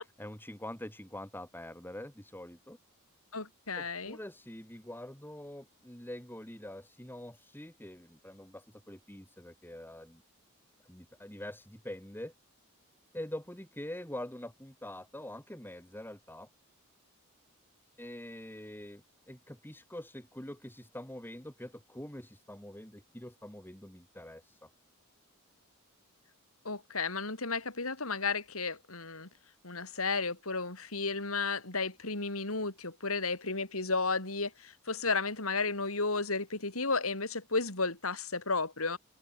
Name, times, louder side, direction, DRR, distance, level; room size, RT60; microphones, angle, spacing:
voice 1, 0.2-2.8 3.8-10.2 10.9-12.3 13.1-16.5 18.0-24.7, left 1 dB, 10° left, 4.7 m, -45 dB
voice 2, 3.3-4.2 26.6-29.3 29.6-39.0, left 4 dB, 75° left, 4.6 m, -33 dB
head